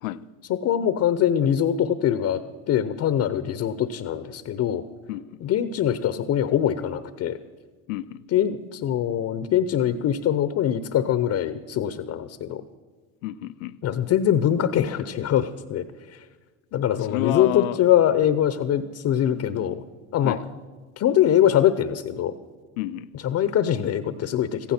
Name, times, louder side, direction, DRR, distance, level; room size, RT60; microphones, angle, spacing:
voice 1, 0.5-2.4 2.7-4.8 5.4-7.4 8.3-12.6 13.8-16.2 16.7-19.8 20.1-20.4 21.0-22.3 23.1-24.7, left 10 dB, 40° left, 0.8 m, -23 dB
voice 2, 7.9-8.2 13.2-13.8 17.1-17.8 20.2-20.4 22.8-23.1, left 16 dB, 80° left, 0.6 m, -29 dB
15.5 x 15.0 x 4.4 m
hypercardioid pair, 85°, 40 cm